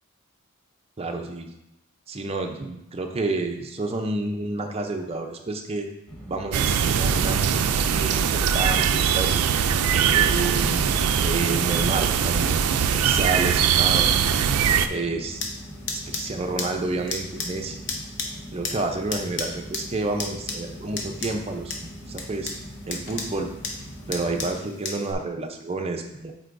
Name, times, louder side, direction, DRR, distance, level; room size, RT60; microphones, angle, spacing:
voice 1, 1.0-1.5 2.1-5.9 6.3-9.5 9.9-10.8 11.2-12.6 12.9-14.1 14.9-15.4 15.9-17.9 18.5-22.5 22.9-23.5 24.1-26.3, right 3 dB, 25° right, 3 dB, 0.5 m, -30 dB
sound 1, 6.1-24.5, equal, 5° left, 1.4 m, -41 dB
sound 2, 6.5-14.9, right 7 dB, 80° right, 0.4 m, -21 dB
sound 3, 15.3-25.1, left 4 dB, 50° left, 0.8 m, -35 dB
8.0 x 4.5 x 2.6 m, 0.89 s
head